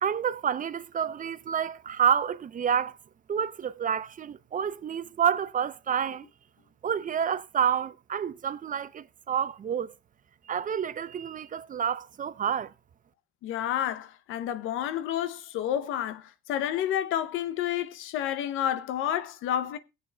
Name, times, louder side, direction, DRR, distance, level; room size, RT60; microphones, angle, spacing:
voice 1, 0.0-3.0 3.3-6.3 6.8-9.9 10.5-12.7, right 8 dB, 40° right, 0.6 m, -29 dB
voice 2, 13.4-19.8, left 10 dB, 90° left, 0.7 m, -30 dB
22.0 x 7.8 x 2.2 m
cardioid pair, 90°, 20 cm